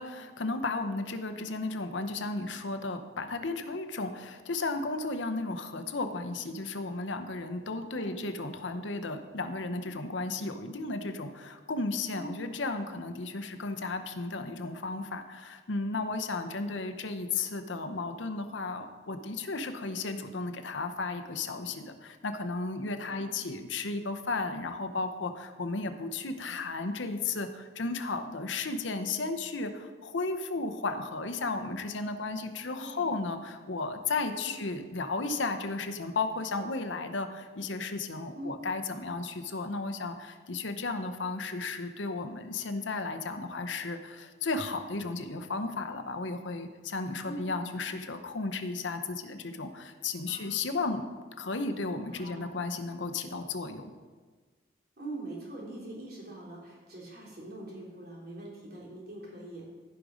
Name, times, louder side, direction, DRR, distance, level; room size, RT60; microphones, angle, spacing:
voice 1, 0.0-51.0 51.4-53.9, left 3 dB, 75° left, 8 dB, 0.8 m, -34 dB
voice 2, 32.7-33.1 34.4-34.6 38.4-38.6 47.2-47.5 50.3-50.5 52.1-52.5 55.0-59.7, right 2 dB, 55° right, -5 dB, 3.4 m, -43 dB
15.5 x 5.3 x 5.0 m, 1.4 s
head